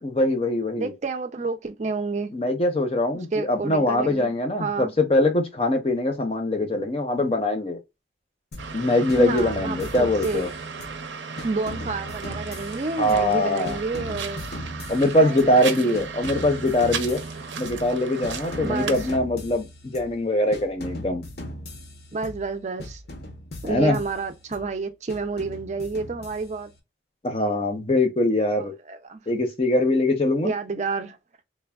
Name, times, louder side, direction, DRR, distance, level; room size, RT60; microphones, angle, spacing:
voice 1, 0.0-0.9 2.3-7.8 8.7-10.5 13.0-13.8 14.9-17.2 17.6-21.2 23.6-24.0 27.2-28.7 29.3-30.5, left 1 dB, 30° left, 0.7 m, -22 dB
voice 2, 0.8-2.3 3.3-4.3 4.6-4.9 9.2-10.5 11.4-14.4 15.2-16.1 18.6-19.0 22.1-23.0 23.6-26.7 28.9-29.2 30.4-31.2, right 4 dB, 40° right, 0.4 m, -29 dB
sound 1, 8.5-8.8 9.1-11.0 11.4-13.4 13.7-15.6 15.9-17.9 18.2-20.2 20.5-22.5 22.8-24.7 25.1-26.7, left 1 dB, 65° left, 0.7 m, -39 dB
sound 2, 8.6-19.2, right 5 dB, 85° right, 0.5 m, -35 dB
3.2 x 2.1 x 2.3 m
head